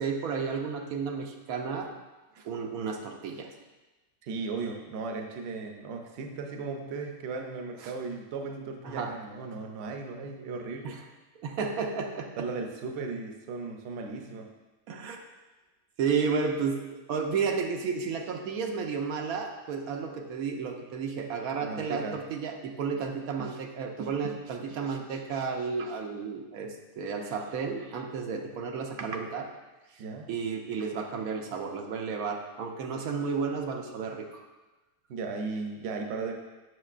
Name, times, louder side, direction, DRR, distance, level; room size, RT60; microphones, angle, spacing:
voice 1, 0.0-1.9 2.4-3.5 7.8-7.9 8.8-9.1 10.8-11.1 11.4-12.5 14.9-15.2 16.0-29.5 30.3-34.5, right 5 dB, 85° right, 3 dB, 1.1 m, -32 dB
voice 2, 4.2-11.0 12.4-14.5 21.6-22.2 30.0-30.3 35.1-36.3, right 4 dB, 60° right, 3 dB, 0.8 m, -36 dB
6.6 x 6.2 x 2.4 m, 1.1 s
omnidirectional pair, 1.5 m